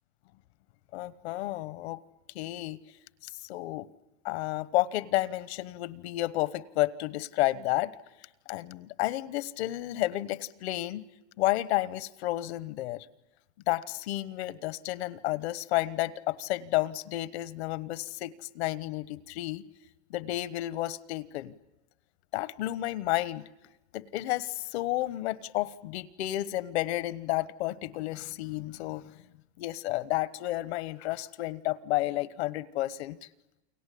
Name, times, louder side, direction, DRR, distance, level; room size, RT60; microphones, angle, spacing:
voice 1, 0.9-2.0 2.3-2.8 3.2-3.9 4.2-7.9 8.5-11.0 11.4-13.1 13.7-19.6 20.1-21.5 22.3-23.4 23.9-29.1 29.6-33.2, left 16 dB, 70° left, 16 dB, 1.1 m, -31 dB
29.5 x 22.5 x 8.4 m, 1.0 s
supercardioid pair, 150°, 34 cm